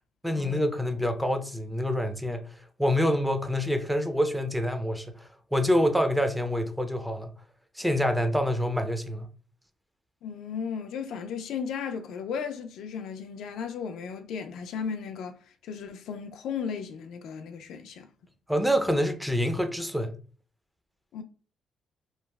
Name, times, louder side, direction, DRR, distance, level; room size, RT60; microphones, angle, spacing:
voice 1, 0.2-2.4 2.8-7.3 7.8-9.3 18.5-20.1, equal, 5° right, 0.5 m, -26 dB
voice 2, 10.2-15.4 15.6-18.1 21.1-21.2, left 6 dB, 80° left, 0.3 m, -35 dB
2.9 x 2.4 x 2.3 m
cardioid pair, 90°, 0 cm